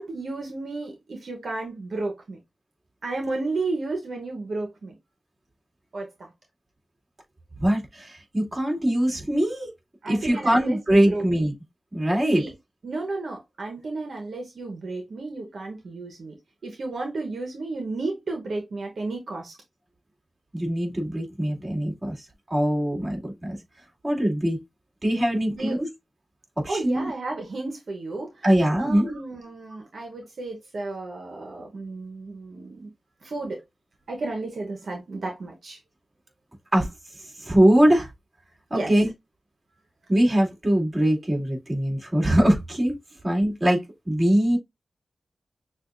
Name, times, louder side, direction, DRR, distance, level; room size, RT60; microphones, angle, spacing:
voice 1, 0.0-2.4 3.0-4.9 5.9-6.1 10.0-11.3 12.3-12.5 12.8-16.3 16.6-19.5 25.5-25.8 26.7-28.4 28.8-32.9 33.2-33.6 34.1-35.8 38.7-38.9, right 3 dB, 80° right, 1.0 m, -32 dB
voice 2, 7.6-9.7 10.1-11.5 11.9-12.4 20.5-22.2 22.5-23.6 24.0-24.6 25.0-25.9 26.6-27.1 28.4-29.2 36.7-36.9 37.4-38.1 38.7-39.1 40.1-43.0 43.2-43.8 44.1-44.6, right 1 dB, 35° right, 2.6 m, -22 dB
6.4 x 2.4 x 2.5 m
cardioid pair, 60°, 0 cm